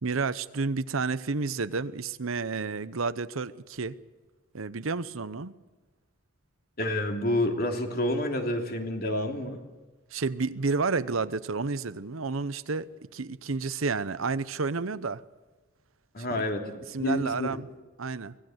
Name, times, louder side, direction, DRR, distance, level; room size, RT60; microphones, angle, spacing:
voice 1, 0.0-4.0 4.5-5.5 10.1-15.2 16.2-16.5 16.9-17.7 18.0-18.3, right 4 dB, 80° right, 0.8 m, -30 dB
voice 2, 6.8-9.6 16.1-16.6 17.0-17.5, left 1 dB, 50° left, 3.1 m, -28 dB
25.0 x 18.0 x 8.0 m
head